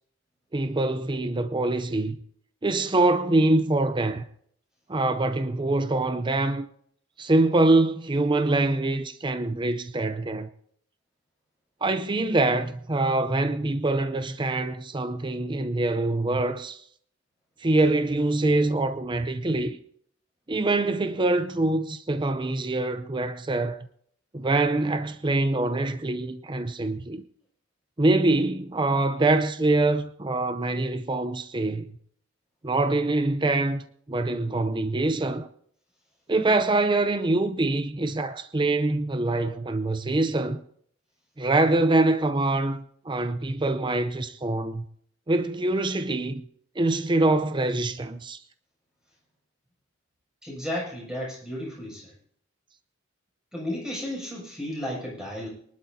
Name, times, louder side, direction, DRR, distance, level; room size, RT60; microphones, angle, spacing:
voice 1, 0.5-2.2 2.6-4.2 4.9-6.7 7.2-10.5 11.8-16.8 17.6-19.8 20.5-23.9 24.3-27.2 28.0-32.0 32.6-33.8 34.1-35.5 36.3-40.6 41.4-44.8 45.3-46.4 46.8-48.4, right 2 dB, 25° right, 0.6 m, -24 dB
voice 2, 50.4-52.1 53.5-55.5, left 1 dB, 5° right, 6.9 m, -33 dB
24.0 x 11.5 x 2.8 m
head